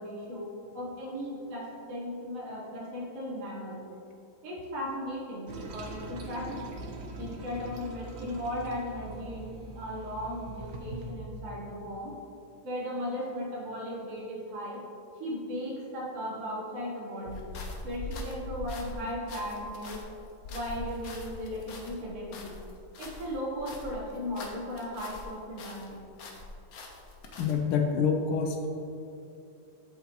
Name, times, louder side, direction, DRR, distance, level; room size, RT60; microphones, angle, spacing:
voice 1, 0.0-3.8 4.4-6.8 7.2-12.1 12.6-14.8 15.2-17.4 17.8-20.0 20.5-22.5 23.0-26.0, equal, 40° right, -4 dB, 1.6 m, -37 dB
Toilet flush, 5.5-11.1, right 2 dB, 65° right, 0.8 m, -42 dB
sound 1, 17.2-25.3 25.6-27.5, left 2 dB, 60° left, 1.0 m, -42 dB
voice 2, 27.4-28.7, left 6 dB, 80° left, 3 dB, 1.5 m, -27 dB
8.3 x 7.6 x 3.1 m, 2.7 s
omnidirectional pair, 2.4 m